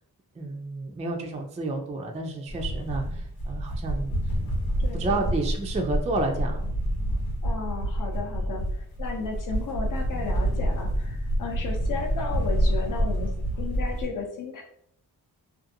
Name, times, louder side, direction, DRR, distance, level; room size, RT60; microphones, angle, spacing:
voice 1, 0.4-4.1 4.9-6.7, right 2 dB, 20° right, 3 dB, 0.3 m, -30 dB
sound 1, 2.5-14.1, equal, 85° left, 1.0 m, -28 dB
voice 2, 4.8-5.3 7.4-13.3 13.5-14.6, left 4 dB, 55° left, 2 dB, 0.6 m, -34 dB
2.6 x 2.4 x 2.6 m, 0.68 s
wide cardioid pair, 90°, 38 cm